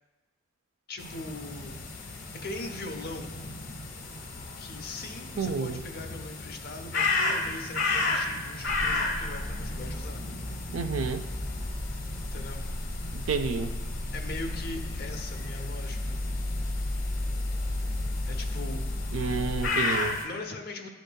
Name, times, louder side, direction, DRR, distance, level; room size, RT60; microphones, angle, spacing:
voice 1, 0.9-1.8 2.0-3.3 4.6-10.2 12.2-12.6 14.1-16.2 18.3-18.9 19.9-20.9, left 2 dB, 50° left, 4 dB, 0.7 m, -40 dB
sound 1, 1.0-20.2, left 3 dB, 70° left, 1.1 m, -34 dB
voice 2, 5.4-5.8 10.7-11.2 13.1-13.7 19.1-20.2, right 5 dB, 85° right, 8 dB, 0.4 m, -30 dB
sound 2, 8.7-19.7, left 1 dB, 40° right, 1.7 m, -34 dB
10.5 x 5.1 x 2.3 m, 1.2 s
head